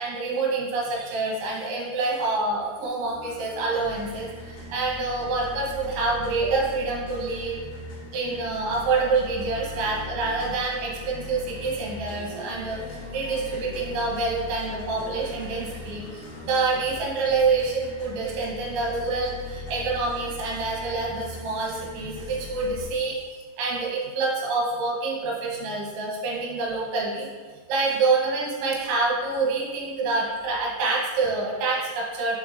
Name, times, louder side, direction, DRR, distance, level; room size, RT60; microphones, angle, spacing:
voice 1, 0.0-7.6 8.1-23.2 23.6-27.3 27.7-32.4, right 3 dB, 75° right, -4 dB, 3.5 m, -27 dB
sound 1, 3.0-22.8, left 3 dB, 65° left, 2.4 m, -39 dB
7.2 x 5.6 x 2.7 m, 1.5 s
omnidirectional pair, 5.6 m